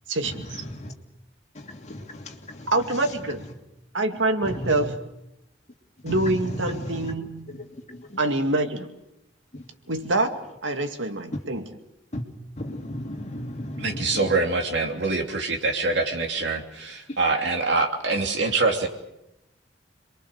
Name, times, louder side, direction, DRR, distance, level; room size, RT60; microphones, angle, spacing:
voice 1, 0.1-0.6 2.7-3.5 3.9-5.0 6.0-7.6 8.2-8.9 9.9-10.3 10.6-11.8, right 2 dB, 90° right, 6 dB, 2.2 m, -26 dB
voice 2, 1.6-2.7 4.4-4.7 6.2-6.3 6.7-7.1 7.5-8.2 12.1-12.2 12.6-14.2, left 1 dB, 40° left, 2 dB, 2.7 m, -35 dB
voice 3, 13.8-18.9, right 3 dB, 65° right, 2 dB, 3.0 m, -24 dB
27.0 x 22.5 x 6.6 m, 0.88 s
head